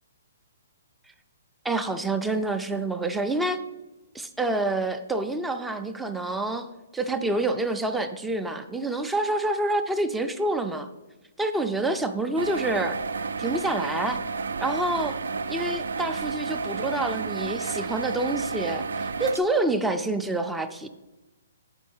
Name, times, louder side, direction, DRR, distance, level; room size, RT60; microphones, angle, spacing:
voice 1, 1.6-3.6 4.1-10.9 11.4-13.0 13.4-14.2 14.6-15.1 15.5-20.9, right 2 dB, 5° right, 7 dB, 0.3 m, -27 dB
sound 1, 12.4-19.4, right 4 dB, 85° right, 0.4 m, -31 dB
7.0 x 5.2 x 5.5 m, 1.1 s
hypercardioid pair, 165°, 0 cm